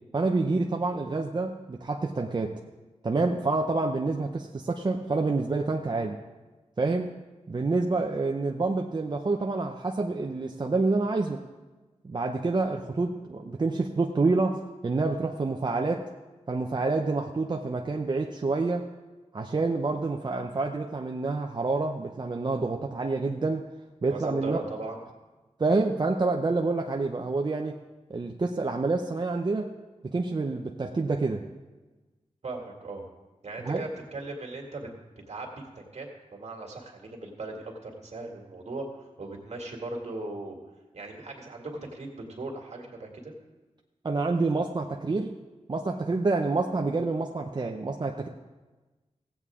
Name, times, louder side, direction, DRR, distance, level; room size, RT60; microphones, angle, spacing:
voice 1, 0.1-2.6 3.0-6.2 6.8-7.1 7.5-11.4 12.0-16.1 16.5-18.8 19.3-23.7 24.0-24.6 25.6-27.8 28.1-29.7 30.0-31.4 33.6-33.8 44.0-45.3 45.7-48.3, right 3 dB, 35° right, 2 dB, 0.6 m, -27 dB
voice 2, 24.1-25.0 32.4-33.0 33.4-34.9 35.3-40.6 40.9-43.3, right 2 dB, 65° right, 0 dB, 2.1 m, -38 dB
16.0 x 8.3 x 3.6 m, 1.2 s
wide cardioid pair, 100°, 12 cm